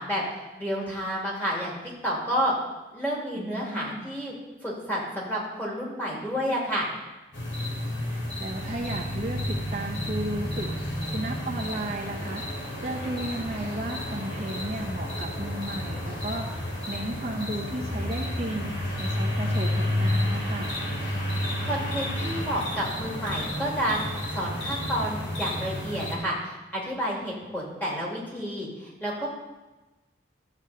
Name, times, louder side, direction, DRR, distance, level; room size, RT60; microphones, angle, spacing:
voice 1, 0.0-1.8 2.0-2.5 2.9-4.3 4.6-6.9 21.6-29.3, equal, 10° left, -4 dB, 2.6 m, -30 dB
voice 2, 3.4-4.1 8.0-10.7 11.1-20.7, right 1 dB, 35° right, -2 dB, 1.0 m, -34 dB
sound 1, 7.3-26.1, left 1 dB, 80° left, 2.8 m, -31 dB
13.0 x 8.0 x 4.2 m, 1.1 s
head